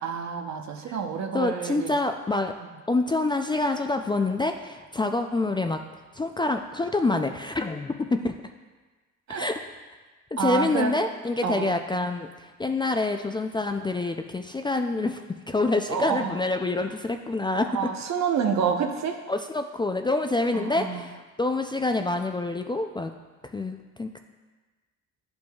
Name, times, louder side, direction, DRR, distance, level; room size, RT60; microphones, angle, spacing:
voice 1, 0.0-1.9 9.3-9.5 10.4-10.9 11.4-11.8 15.9-16.4 17.7-19.2 20.5-21.0, right 6 dB, 65° right, 4 dB, 0.9 m, -28 dB
voice 2, 1.3-2.5 2.9-5.8 6.1-8.3 9.3-9.6 10.4-15.2 15.5-17.8 19.3-23.1 23.5-24.2, left 2 dB, 15° left, 5 dB, 0.3 m, -26 dB
10.5 x 5.2 x 2.3 m, 1.3 s
cardioid pair, 90°, 30 cm